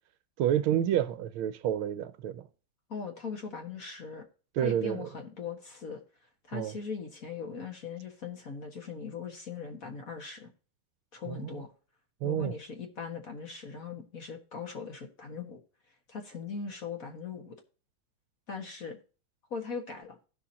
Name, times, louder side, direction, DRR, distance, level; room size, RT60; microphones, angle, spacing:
voice 1, 0.4-2.4 4.6-5.1 6.5-6.7 11.3-11.6 12.2-12.5, right 10 dB, 80° right, 1.4 m, -29 dB
voice 2, 2.9-4.3 4.6-6.0 6.5-10.5 11.1-11.7 12.2-15.6 16.1-17.6 18.5-19.0 19.5-20.2, left 5 dB, 45° left, 1.7 m, -40 dB
16.5 x 6.1 x 2.8 m
omnidirectional pair, 2.4 m